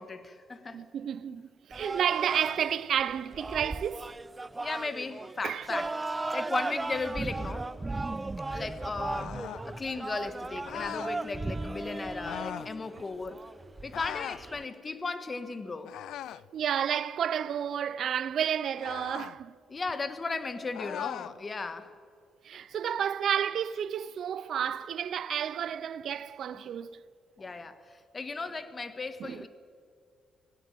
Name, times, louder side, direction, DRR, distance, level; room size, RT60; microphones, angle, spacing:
voice 1, 0.0-0.9 1.3-1.4 4.5-5.9 6.3-7.7 8.5-13.4 13.8-15.9 19.7-21.9 22.5-22.6 26.5-26.6 27.4-29.5, left 3 dB, 30° left, 1.6 m, -36 dB
voice 2, 0.7-4.1 5.4-5.7 16.5-19.5 22.4-27.0 29.2-29.4, right 9 dB, 65° right, 0.6 m, -31 dB
sound 1, 1.7-14.6, right 2 dB, 20° right, 0.4 m, -37 dB
sound 2, 6.9-13.8, equal, 5° right, 1.4 m, -47 dB
sound 3, 9.1-9.7 10.6-11.2 12.2-12.7 13.9-14.4 15.8-16.5 18.8-19.4 20.7-21.3, left 12 dB, 80° left, 0.4 m, -39 dB
18.0 x 17.0 x 9.3 m
cardioid pair, 90°, 0 cm